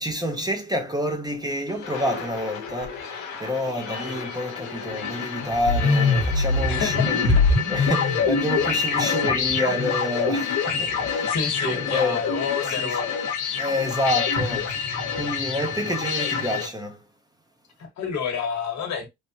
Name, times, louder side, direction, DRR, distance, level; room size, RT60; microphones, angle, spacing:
voice 1, 0.0-7.4 7.7-12.2 12.7-13.0 13.6-14.8 15.1-17.0, left 1 dB, 15° right, 0.7 m, -28 dB
sound 1, 1.7-16.7, left 5 dB, 80° left, 0.8 m, -25 dB
voice 2, 6.7-7.6 9.1-9.2 10.7-13.2 17.8-19.1, left 6 dB, 65° left, 1.2 m, -30 dB
3.2 x 2.2 x 2.7 m
cardioid pair, 90°, 30 cm